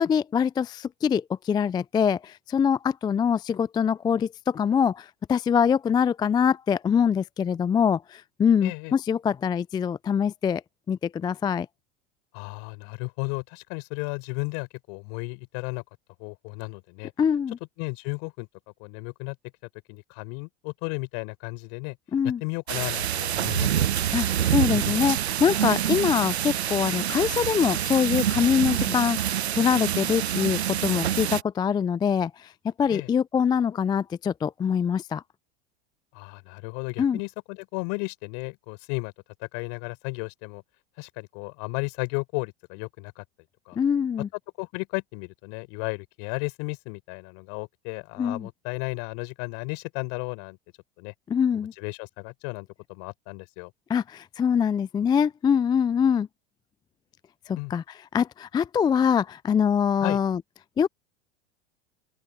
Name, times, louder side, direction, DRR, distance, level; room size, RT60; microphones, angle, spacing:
voice 1, 0.0-10.6 10.9-11.7 17.2-17.6 22.1-22.4 24.1-35.2 37.0-37.2 43.8-44.3 48.2-48.5 51.3-51.7 53.9-56.3 57.5-60.4 60.8-60.9, left 7 dB, 15° left, 0.3 m, -24 dB
voice 2, 8.6-8.9 12.3-15.8 16.2-17.1 17.8-18.5 18.8-19.4 19.9-22.0 22.2-23.9 32.9-33.1 36.1-39.1 39.4-40.6 41.0-43.2 43.7-43.8 44.6-50.6 51.0-51.1 51.8-53.7 57.5-57.7 60.0-60.2, left 37 dB, 55° left, 5.0 m, -34 dB
sound 1, 22.7-31.4, right 11 dB, 80° right, 1.0 m, -26 dB
open air
hypercardioid pair, 85°, 32 cm